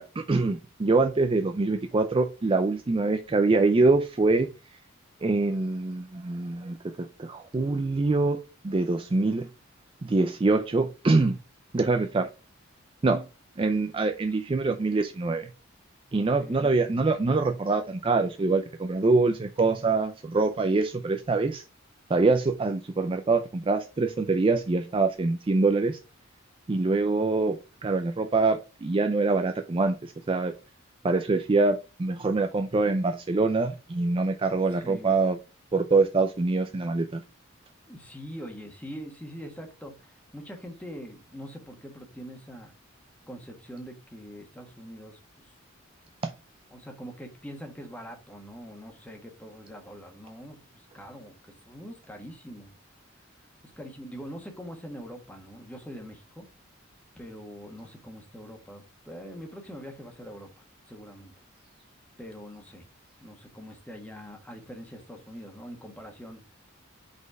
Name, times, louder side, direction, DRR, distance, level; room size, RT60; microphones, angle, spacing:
voice 1, 0.0-4.5 5.2-9.5 10.0-11.4 11.7-12.3 13.0-13.2 13.6-15.5 16.1-21.6 22.1-26.0 26.7-30.5 31.0-35.4 35.7-37.2 46.2-46.3, right 3 dB, 25° right, 0.4 m, -24 dB
voice 2, 16.4-16.7 34.7-35.1 37.9-42.7 43.3-45.5 46.7-51.4 51.6-52.7 53.8-56.4 57.2-61.3 62.2-62.8 63.2-66.4, equal, 5° left, 1.3 m, -43 dB
5.2 x 4.2 x 4.8 m
head